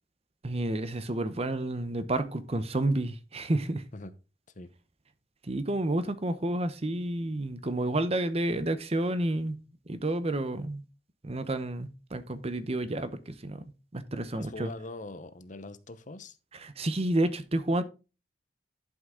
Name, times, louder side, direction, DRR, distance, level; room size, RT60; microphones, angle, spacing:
voice 1, 0.4-3.8 5.5-9.6 9.9-10.8 11.2-13.6 13.9-14.7 16.6-17.8, right 1 dB, 35° right, 0.9 m, -30 dB
voice 2, 14.3-16.4, left 2 dB, 45° left, 0.9 m, -42 dB
11.0 x 5.9 x 3.7 m
head